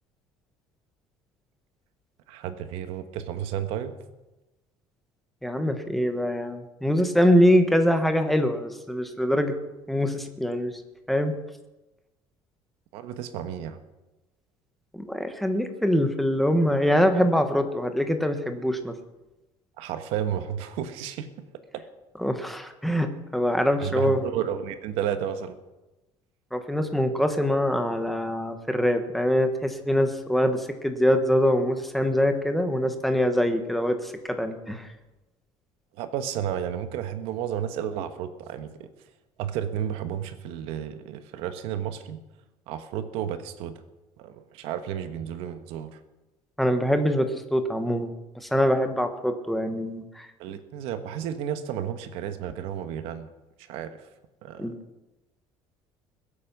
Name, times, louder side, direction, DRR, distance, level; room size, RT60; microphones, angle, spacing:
voice 1, 2.3-3.9 12.9-13.8 19.8-21.3 21.7-21.8 23.8-25.6 36.0-38.9 39.4-42.2 42.7-43.7 44.2-46.0 50.4-53.3 53.7-54.0 54.4-54.8, right 9 dB, 75° right, 9 dB, 1.4 m, -32 dB
voice 2, 5.4-9.5 9.9-10.8 11.1-11.3 14.9-18.9 22.2-24.2 26.5-34.9 46.6-48.1 48.4-50.3 54.6-54.7, equal, ahead, 6 dB, 1.2 m, -24 dB
21.5 x 8.6 x 6.1 m, 1.1 s
cardioid pair, 160°, 10 cm